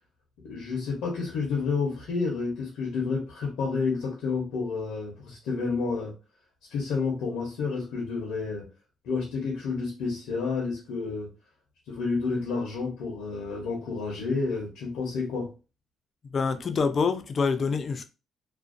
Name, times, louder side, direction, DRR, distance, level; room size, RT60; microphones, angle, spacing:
voice 1, 0.4-6.1 6.7-8.7 9.0-11.3 11.9-15.5, left 4 dB, 90° left, 0.7 m, -30 dB
voice 2, 16.3-18.0, left 5 dB, 45° left, 0.3 m, -26 dB
2.5 x 2.1 x 2.5 m
cardioid pair, 90°, 0 cm